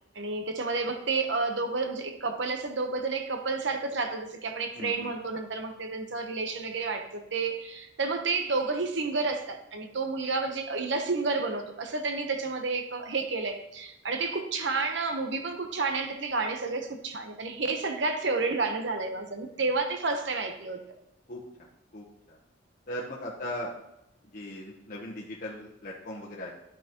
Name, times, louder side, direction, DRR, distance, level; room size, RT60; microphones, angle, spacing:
voice 1, 0.1-20.8, right 3 dB, 65° right, 6 dB, 1.0 m, -30 dB
voice 2, 4.8-5.1 21.3-21.4 21.9-22.4 22.9-23.7 24.3-26.5, left 1 dB, 45° left, -5 dB, 1.0 m, -38 dB
11.5 x 6.1 x 2.9 m, 0.84 s
head